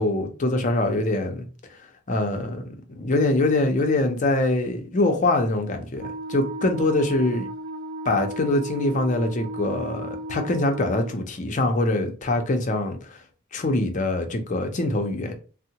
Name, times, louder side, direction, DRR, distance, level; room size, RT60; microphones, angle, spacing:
voice 1, 0.0-1.4 2.1-2.6 3.0-7.5 8.1-13.2 13.5-15.3, left 2 dB, 35° left, 0.5 m, -24 dB
Wind instrument woodwind instrument, 6.0-11.1, right 1 dB, 70° right, 0.6 m, -35 dB
3.5 x 2.0 x 2.8 m
head